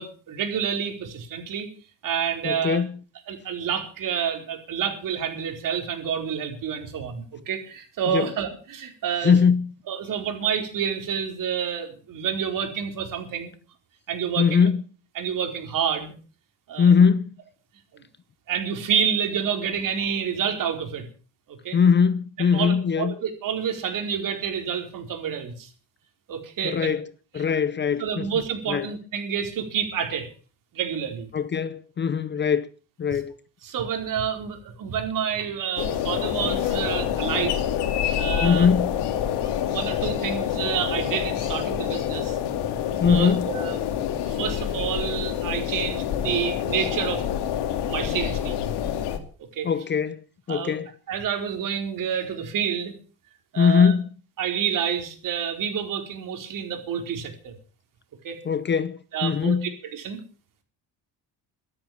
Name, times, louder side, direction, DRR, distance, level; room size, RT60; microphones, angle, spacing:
voice 1, 0.0-1.7 2.0-2.8 3.3-9.3 9.9-13.5 14.1-14.6 15.2-16.1 16.7-16.9 17.9-18.0 18.5-21.1 21.5-21.8 22.4-25.7 26.3-26.9 27.4-27.5 28.0-30.3 30.7-31.3 33.6-37.6 38.2-38.7 39.4-42.4 43.0-43.8 44.1-47.2 47.8-48.7 49.5-49.7 50.5-50.8 51.1-52.9 53.5-53.9 54.4-57.5 58.2-58.4 59.1-60.2, right 8 dB, 55° right, 4.4 m, -28 dB
voice 2, 2.4-3.0 8.1-8.3 9.2-9.7 14.4-14.8 16.8-17.3 21.7-23.1 26.6-27.1 27.3-28.3 28.7-28.9 31.3-32.7 33.0-33.3 38.4-38.9 43.0-43.5 49.6-50.2 50.5-50.9 53.6-54.1 58.5-59.7, left 6 dB, 30° left, 0.7 m, -21 dB
sound 1, 35.8-49.2, left 10 dB, 85° left, 2.8 m, -27 dB
13.5 x 13.0 x 7.1 m
cardioid pair, 165°, 39 cm